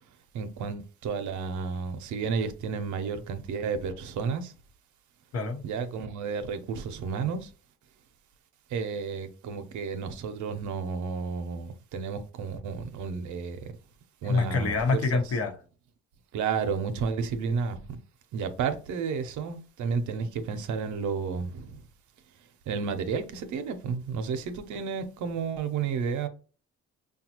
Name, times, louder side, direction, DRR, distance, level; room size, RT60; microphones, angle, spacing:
voice 1, 0.3-4.5 5.6-7.5 8.7-13.7 14.2-14.8 16.3-18.0 18.3-21.8 22.7-26.3, right 5 dB, 75° right, 0.7 m, -32 dB
voice 2, 14.2-15.6, left 4 dB, 55° left, 1.0 m, -26 dB
5.2 x 2.3 x 2.9 m
cardioid pair, 90°, 30 cm